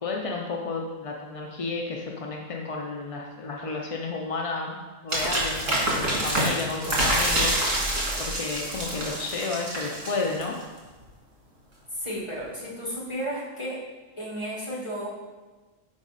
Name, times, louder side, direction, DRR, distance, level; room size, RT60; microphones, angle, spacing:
voice 1, 0.0-4.8 5.0-7.5 8.2-10.6, left 3 dB, 50° left, 0 dB, 0.4 m, -32 dB
sound 1, 5.1-10.6, right 1 dB, 75° right, 2.1 m, -26 dB
voice 2, 11.9-13.8 14.2-15.1, equal, 25° left, -5 dB, 1.5 m, -33 dB
6.1 x 4.9 x 4.1 m, 1.2 s
omnidirectional pair, 1.3 m